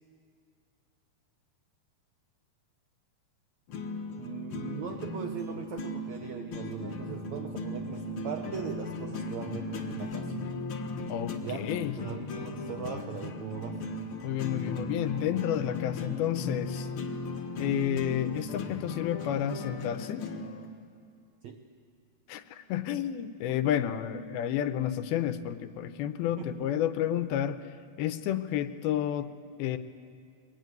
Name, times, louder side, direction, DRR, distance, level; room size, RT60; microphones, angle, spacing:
sound 1, 3.7-20.7, left 2 dB, 60° left, 1.4 m, -37 dB
voice 1, 4.2-10.4 11.4-11.7 12.0-13.8 21.4-21.6 23.6-23.7 26.4-26.7, right 7 dB, 90° right, 5 dB, 1.5 m, -40 dB
voice 2, 11.1-11.9 14.2-16.9 17.6-20.3 22.3-27.6 28.0-29.3 29.6-29.8, left 11 dB, 80° left, 11 dB, 2.6 m, -30 dB
22.5 x 21.5 x 9.4 m, 2.3 s
omnidirectional pair, 4.6 m